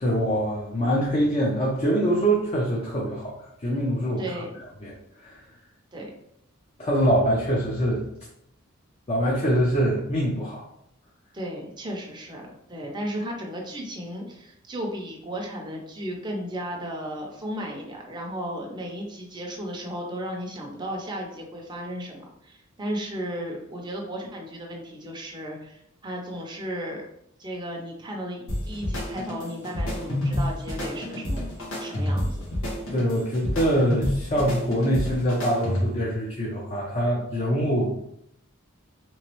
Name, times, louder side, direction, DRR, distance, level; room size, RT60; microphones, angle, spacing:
voice 1, 0.0-4.2 4.8-5.4 6.8-8.0 9.1-10.6 32.9-37.9, equal, 30° left, -4 dB, 0.6 m, -24 dB
voice 2, 4.2-4.5 5.9-6.1 11.3-22.2 22.4-27.0 27.4-31.4 31.8-32.4, equal, 20° right, 0 dB, 0.6 m, -34 dB
sound 1, 28.5-36.1, left 1 dB, 85° left, 1.2 m, -29 dB
3.4 x 3.0 x 3.0 m, 0.75 s
head